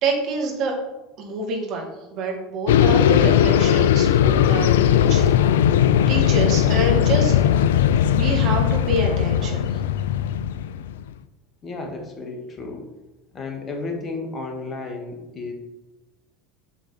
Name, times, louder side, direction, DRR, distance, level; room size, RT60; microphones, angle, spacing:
voice 1, 0.0-0.8 1.2-5.3 6.1-7.3 8.1-9.8, right 3 dB, 50° right, 1 dB, 2.1 m, -27 dB
sound 1, 2.7-11.0, left 10 dB, 70° left, 0.3 m, -18 dB
voice 2, 11.6-12.9 13.3-15.5, left 3 dB, 30° left, 2 dB, 1.8 m, -32 dB
8.0 x 6.2 x 4.4 m, 1.0 s
figure-of-eight pair, 70°, 0 cm